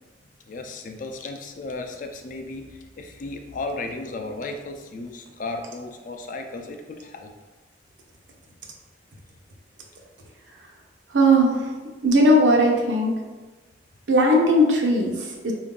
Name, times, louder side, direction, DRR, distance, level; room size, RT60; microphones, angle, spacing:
voice 1, 0.5-7.3, left 2 dB, 45° left, 4 dB, 0.4 m, -35 dB
voice 2, 11.1-11.7 12.0-13.1 14.1-15.5, equal, 90° right, -1 dB, 0.8 m, -18 dB
4.5 x 2.6 x 3.7 m, 1.2 s
head